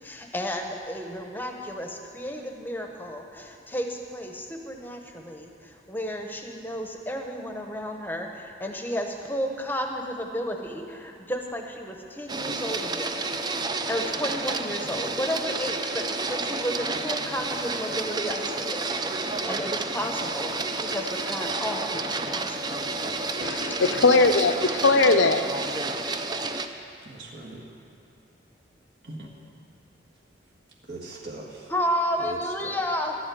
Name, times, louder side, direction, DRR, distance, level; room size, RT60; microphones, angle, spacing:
voice 1, 0.0-13.2 13.9-18.8 19.2-20.5 20.8-22.8 23.7-24.0 31.7-33.2, equal, 10° left, 3 dB, 0.9 m, -32 dB
Printer, 12.3-26.7, right 3 dB, 20° right, 0.5 m, -30 dB
voice 2, 23.4-25.4, left 3 dB, 85° left, 9 dB, 0.7 m, -20 dB
voice 3, 27.0-27.6 29.0-29.3 30.8-31.7 32.2-32.8, right 2 dB, 60° right, -3 dB, 1.7 m, -40 dB
11.5 x 8.0 x 9.3 m, 2.6 s
head